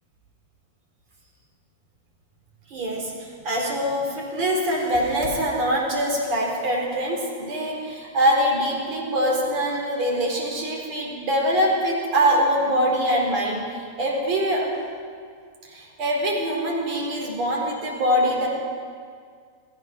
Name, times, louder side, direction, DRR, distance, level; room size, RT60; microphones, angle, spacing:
voice 1, 2.7-14.7 15.6-18.5, equal, 45° right, -2 dB, 4.3 m, -24 dB
15.5 x 9.0 x 6.2 m, 2.1 s
figure-of-eight pair, 90°, 0 cm